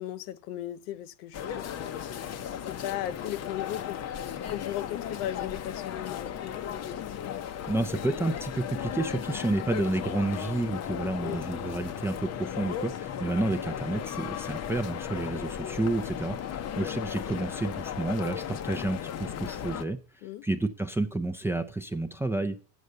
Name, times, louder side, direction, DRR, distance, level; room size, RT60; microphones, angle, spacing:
voice 1, 0.0-2.0 2.7-6.7 11.2-11.4 20.2-20.5, left 12 dB, 75° left, 0.7 m, -37 dB
sound 1, 1.3-19.8, left 9 dB, 35° left, 0.7 m, -36 dB
voice 2, 7.7-20.0 20.4-22.6, right 2 dB, 5° right, 0.4 m, -30 dB
8.2 x 6.3 x 6.6 m
supercardioid pair, 120°, 46 cm